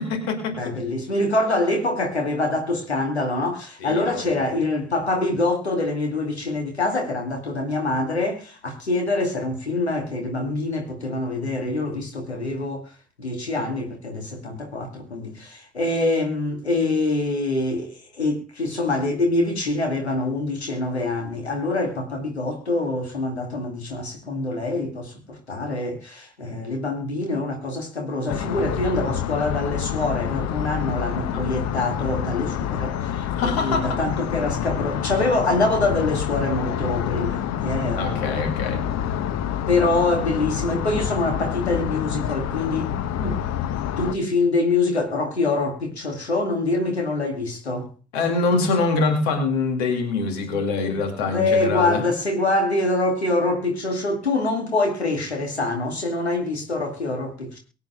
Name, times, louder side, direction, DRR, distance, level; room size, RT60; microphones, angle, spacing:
voice 1, 0.0-0.7 3.8-4.4 31.3-31.4 33.3-34.0 38.0-38.8 48.1-52.0, left 3 dB, 75° left, 2.5 m, -24 dB
voice 2, 0.6-12.9 13.2-38.4 39.7-43.4 44.0-47.9 51.3-57.6, left 2 dB, 90° left, 2.3 m, -25 dB
sound 1, 28.3-44.1, left 10 dB, 55° left, 1.1 m, -27 dB
23.5 x 8.3 x 2.3 m
figure-of-eight pair, 45°, 32 cm